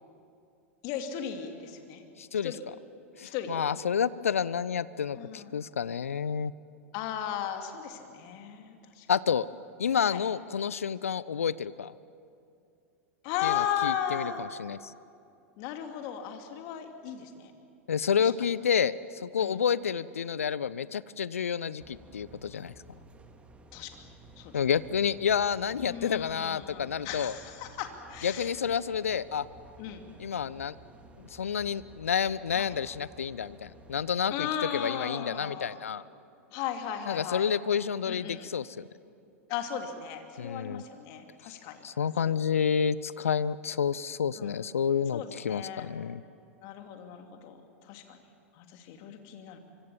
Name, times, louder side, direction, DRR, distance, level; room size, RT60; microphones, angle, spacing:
voice 1, 0.8-2.0 2.4-2.6 3.3-3.6 5.1-5.5 6.9-9.1 10.1-10.2 13.2-14.4 15.6-17.5 19.4-19.5 23.7-23.9 24.4-24.5 25.8-28.5 29.8-30.0 32.6-32.8 34.3-35.8 36.5-37.5 38.1-38.5 39.5-41.8 42.2-42.3 44.4-44.6 45.1-45.9 46.6-47.6 47.8-48.2 48.6-49.6, left 9 dB, 50° left, 5 dB, 2.8 m, -36 dB
voice 2, 2.2-2.5 3.2-6.5 9.1-9.5 9.8-11.9 13.4-14.9 17.9-22.7 24.5-27.4 28.2-29.5 30.2-30.7 31.2-36.0 37.1-38.9 40.4-40.8 41.8-46.2, left 7 dB, 75° left, 19 dB, 0.6 m, -29 dB
sound 1, 21.8-34.1, right 1 dB, 15° right, 2.3 m, -53 dB
25.0 x 25.0 x 7.3 m, 2.5 s
figure-of-eight pair, 90°, 7 cm